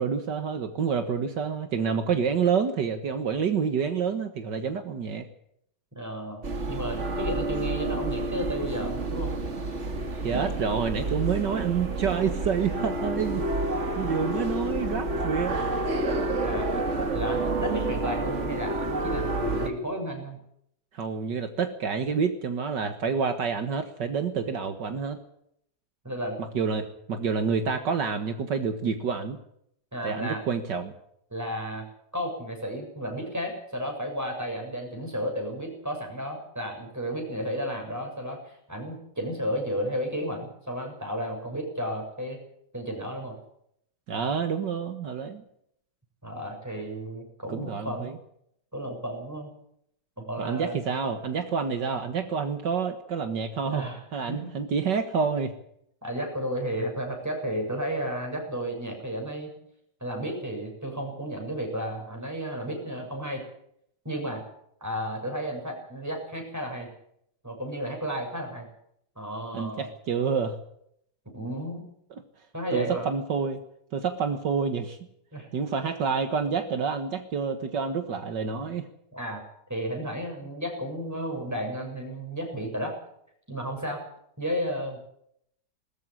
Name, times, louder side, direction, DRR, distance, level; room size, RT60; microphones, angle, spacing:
voice 1, 0.0-5.3 10.2-13.4 14.0-15.6 20.9-25.2 26.4-29.4 30.0-30.9 44.1-45.4 47.5-48.2 50.4-53.8 54.1-55.6 69.5-70.6 72.7-73.6 73.9-75.0 75.5-78.9, right 6 dB, 70° right, 7 dB, 2.1 m, -28 dB
voice 2, 6.0-9.3 16.4-20.4 26.0-26.4 29.9-30.4 31.3-31.9 32.1-42.4 42.7-43.4 46.2-48.1 48.7-49.5 50.2-50.8 53.6-54.0 54.3-54.6 56.0-59.5 60.0-63.4 64.1-64.4 64.8-66.9 67.4-68.7 69.2-69.9 71.3-71.8 72.5-73.1 75.3-75.5 79.1-79.4 79.7-83.0 83.5-84.1 84.4-85.1, equal, 10° right, 2 dB, 7.0 m, -33 dB
sound 1, 6.4-19.7, right 2 dB, 40° right, 2.1 m, -29 dB
20.5 x 14.0 x 9.9 m, 0.73 s
omnidirectional pair, 2.0 m